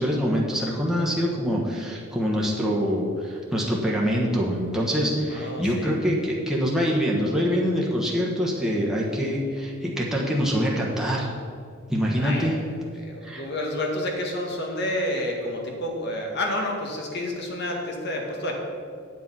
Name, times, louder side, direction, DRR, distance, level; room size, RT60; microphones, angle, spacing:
voice 1, 0.0-11.3 11.9-12.6 13.2-13.4, equal, 5° right, -4 dB, 1.2 m, -25 dB
voice 2, 5.3-5.9 12.2-12.5 13.0-18.5, left 1 dB, 55° left, 1 dB, 1.7 m, -29 dB
9.2 x 7.6 x 5.5 m, 2.2 s
head